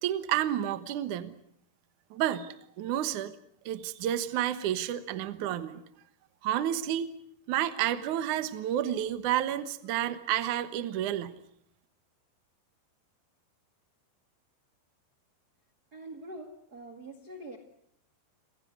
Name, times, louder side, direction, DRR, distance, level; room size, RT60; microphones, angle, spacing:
voice 1, 0.0-1.3 2.1-3.3 3.7-5.8 6.4-7.1 7.5-11.3, right 11 dB, 70° right, 12 dB, 1.9 m, -30 dB
voice 2, 15.9-17.6, right 1 dB, 45° right, 5 dB, 1.2 m, -44 dB
29.5 x 16.0 x 9.5 m, 0.72 s
omnidirectional pair, 5.4 m